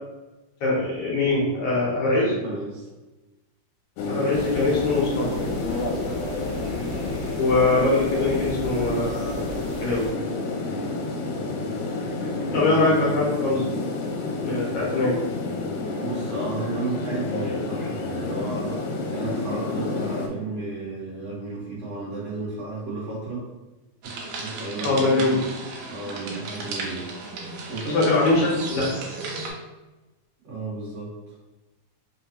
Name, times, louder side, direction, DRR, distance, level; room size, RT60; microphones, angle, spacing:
voice 1, 0.6-2.4 4.1-5.3 7.4-9.5 9.8-10.1 12.5-13.6 14.4-15.2 24.8-25.4 27.9-28.9, left 2 dB, 70° left, -6 dB, 1.5 m, -22 dB
voice 2, 2.4-2.9 6.0-6.2 10.6-11.0 11.3-11.5 12.4-12.7 16.0-23.5 24.0-25.4 25.8-27.1 27.7-28.4 30.4-31.3, right 3 dB, 60° right, -6 dB, 2.0 m, -33 dB
sound 1, 4.0-20.3, left 3 dB, 85° left, 2.1 m, -29 dB
sound 2, 4.3-10.1, left 1 dB, 55° left, 1.1 m, -38 dB
sound 3, 24.0-29.5, right 3 dB, 85° right, 2.2 m, -35 dB
5.0 x 2.2 x 2.9 m, 1.1 s
omnidirectional pair, 3.7 m